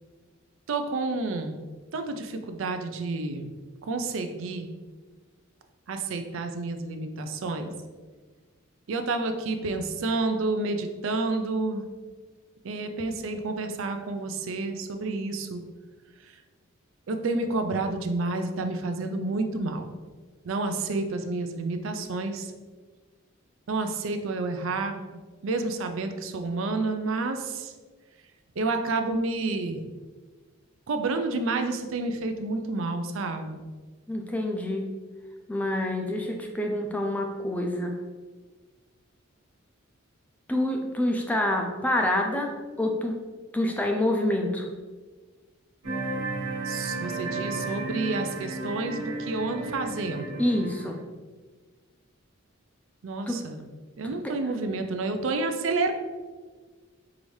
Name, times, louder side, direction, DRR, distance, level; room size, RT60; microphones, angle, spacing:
voice 1, 0.7-3.5 3.8-4.7 5.9-7.7 8.9-11.8 12.6-15.6 16.2-16.4 17.1-19.9 20.4-22.5 23.7-25.0 25.4-27.7 28.6-29.8 30.9-33.6 46.6-50.4 53.0-53.7 54.0-55.9, right 3 dB, 65° right, 7 dB, 0.4 m, -29 dB
voice 2, 34.1-34.9 35.5-37.9 40.5-43.1 43.5-44.7 50.4-51.0 53.3-53.4, left 1 dB, 5° left, 2 dB, 0.3 m, -27 dB
sound 1, 45.8-50.9, right 2 dB, 85° right, 1.2 m, -33 dB
4.8 x 2.6 x 3.1 m, 1.4 s
head